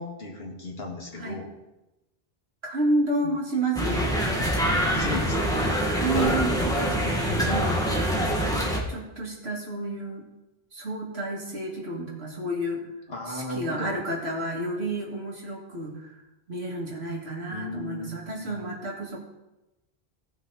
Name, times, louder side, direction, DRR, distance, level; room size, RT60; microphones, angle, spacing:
voice 1, 0.0-1.5 3.2-3.4 4.8-6.2 13.1-14.0 17.5-18.6, left 2 dB, 75° left, 0 dB, 2.1 m, -36 dB
voice 2, 2.6-4.1 4.9-5.2 5.9-8.2 8.9-10.2 10.7-12.8 13.3-16.1 16.5-19.2, right 2 dB, 90° right, -2 dB, 2.6 m, -30 dB
sound 1, 3.8-8.8, equal, 5° left, 1.7 m, -25 dB
sound 2, 6.1-7.6, left 2 dB, 55° left, 1.7 m, -35 dB
17.0 x 6.1 x 4.1 m, 1.0 s
omnidirectional pair, 1.0 m